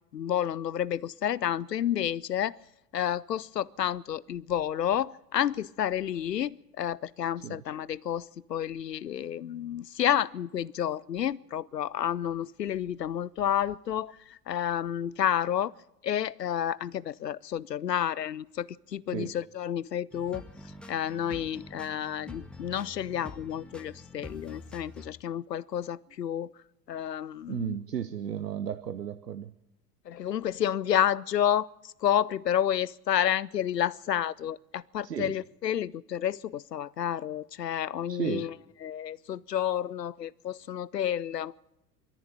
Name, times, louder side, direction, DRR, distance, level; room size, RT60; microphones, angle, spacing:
voice 1, 0.1-2.6 2.9-15.7 16.0-20.4 20.9-26.5 26.9-27.8 30.1-31.7 32.0-38.5 38.8-41.5, left 10 dB, 80° left, 0.6 m, -30 dB
sound 1, 20.1-25.1, left 1 dB, ahead, 1.6 m, -46 dB
voice 2, 27.5-29.5 35.0-35.4 38.1-38.5, right 9 dB, 80° right, 0.8 m, -34 dB
22.0 x 13.5 x 8.9 m
figure-of-eight pair, 80°, 48 cm